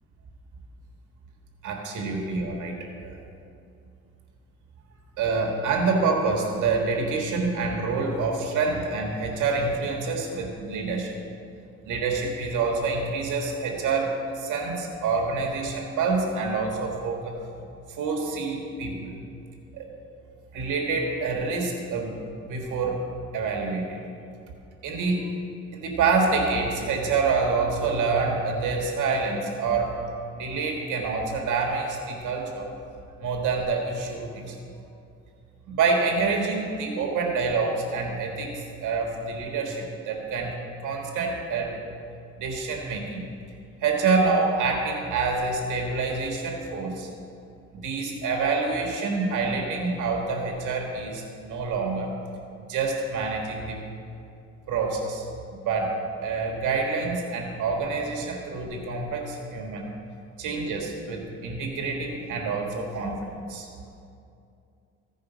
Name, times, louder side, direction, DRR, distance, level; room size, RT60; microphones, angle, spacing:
voice 1, 1.6-3.2 5.2-11.1 11.8-17.4 18.0-19.2 19.7-19.9 20.5-22.2 22.4-23.0 23.3-24.0 24.8-25.3 25.7-30.0 30.3-32.7 33.2-34.7 35.7-40.6 40.8-41.8 42.4-43.2 43.8-47.1 47.7-52.1 52.7-53.8 54.7-55.2 55.6-59.9 60.4-63.7, right 4 dB, 80° right, 1 dB, 1.6 m, -27 dB
15.5 x 5.2 x 5.0 m, 2.5 s
cardioid pair, 90°, 30 cm